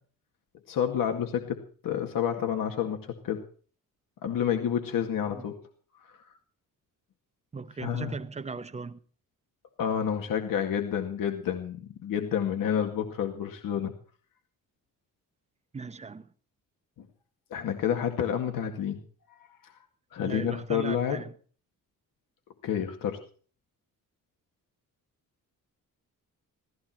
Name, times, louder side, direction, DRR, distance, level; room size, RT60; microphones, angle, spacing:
voice 1, 0.7-3.4 4.2-5.6 6.0-6.2 7.8-8.1 9.8-13.9 17.5-19.0 19.6-19.8 20.1-21.2 22.6-23.2, left 8 dB, 80° left, 2.1 m, -29 dB
voice 2, 7.5-9.0 15.7-16.3 20.2-21.3, right 4 dB, 20° right, 0.8 m, -38 dB
17.0 x 15.0 x 4.4 m
wide cardioid pair, 170°, 33 cm